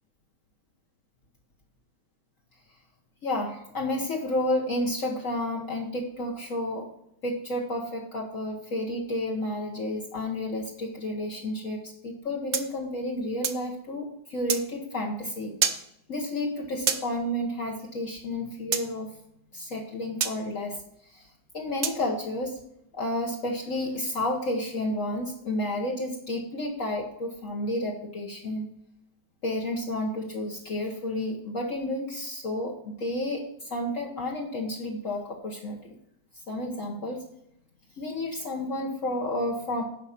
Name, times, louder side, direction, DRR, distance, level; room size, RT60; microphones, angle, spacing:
voice 1, 3.2-6.9 7.2-19.1 19.5-20.8 21.0-21.3 21.5-22.6 22.9-28.7 29.4-35.9 36.5-37.2 38.0-39.8, left 1 dB, 55° left, -1 dB, 1.5 m, -31 dB
sound 1, 12.5-13.7 14.5-14.6 15.6-15.8 16.9-17.0 18.7-18.9 20.2-20.4 21.8-22.0, right 7 dB, 50° right, 0.9 m, -27 dB
11.0 x 5.0 x 5.8 m, 0.77 s
omnidirectional pair, 1.8 m